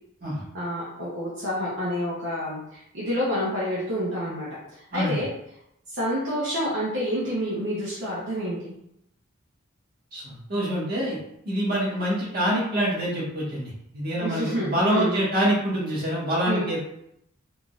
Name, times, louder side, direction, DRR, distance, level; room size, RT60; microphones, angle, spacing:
voice 1, 0.5-4.5 4.8-5.3 5.9-8.7 14.2-15.2 16.4-16.7, equal, 65° right, -7 dB, 0.8 m, -28 dB
voice 2, 10.1-11.2 11.4-16.8, equal, 45° right, -6 dB, 1.4 m, -26 dB
3.6 x 2.6 x 2.4 m, 0.78 s
head